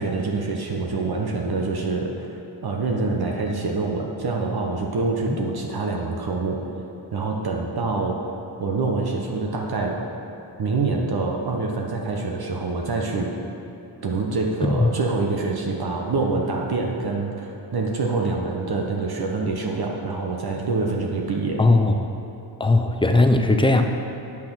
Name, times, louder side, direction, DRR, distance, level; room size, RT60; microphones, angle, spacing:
voice 1, 0.0-2.4 2.6-6.6 7.1-8.2 8.6-10.0 10.6-13.3 14.0-21.6, right 3 dB, 50° right, 1 dB, 0.9 m, -26 dB
voice 2, 21.6-21.9 22.6-23.8, left 2 dB, 10° left, 4 dB, 0.4 m, -18 dB
8.8 x 6.0 x 6.1 m, 2.9 s
wide cardioid pair, 150°, 47 cm